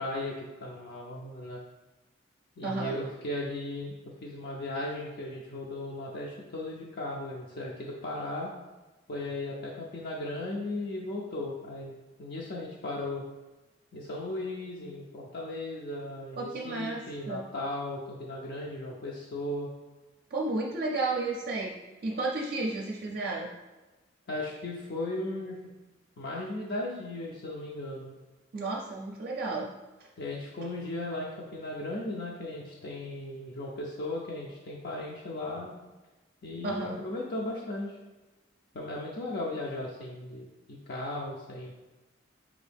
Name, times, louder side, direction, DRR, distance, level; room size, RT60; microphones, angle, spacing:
voice 1, 0.0-1.6 2.6-3.9 4.2-8.5 9.1-13.2 13.9-19.7 24.3-25.7 26.2-28.2 30.2-35.7 36.4-38.0 38.7-41.7, left 2 dB, 60° left, -3 dB, 0.5 m, -36 dB
voice 2, 2.6-3.0 16.4-17.4 20.3-21.7 22.0-23.5 28.5-29.7 30.0-30.1 36.6-37.0, right 2 dB, 55° right, -2 dB, 0.5 m, -32 dB
5.0 x 2.7 x 3.4 m, 1.2 s
head